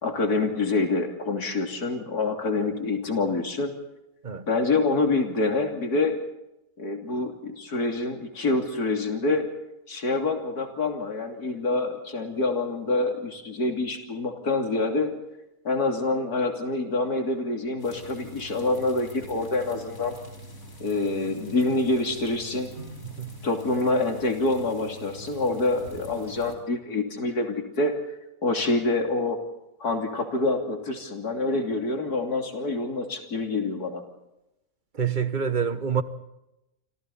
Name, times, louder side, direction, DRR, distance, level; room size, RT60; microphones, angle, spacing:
voice 1, 0.0-3.7 4.5-6.1 6.8-9.5 9.9-15.1 15.7-20.1 20.8-22.7 23.4-27.9 28.4-29.4 29.8-34.0, left 3 dB, 90° left, 3.5 m, -26 dB
sound 1, 17.8-26.6, equal, 65° left, 4.7 m, -44 dB
voice 2, 23.0-23.4 34.9-36.0, right 7 dB, 35° right, 1.3 m, -27 dB
29.5 x 25.5 x 4.2 m
omnidirectional pair, 1.6 m